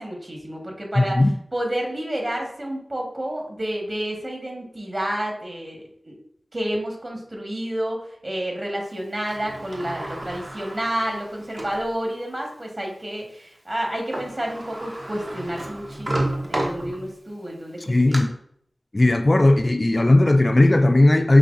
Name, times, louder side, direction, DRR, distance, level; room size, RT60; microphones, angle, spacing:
voice 1, 0.0-1.2 1.5-6.2 6.5-18.2, right 1 dB, 45° right, 1.4 m, -30 dB
voice 2, 1.0-1.3 17.9-18.3 18.9-21.4, left 2 dB, 40° left, 0.3 m, -17 dB
Sliding door, 9.3-11.9 12.5-12.6 13.9-14.0 14.1-17.3 17.8-18.2, right 1 dB, 60° right, 0.9 m, -31 dB
5.7 x 3.1 x 2.6 m
wide cardioid pair, 50°, 0 cm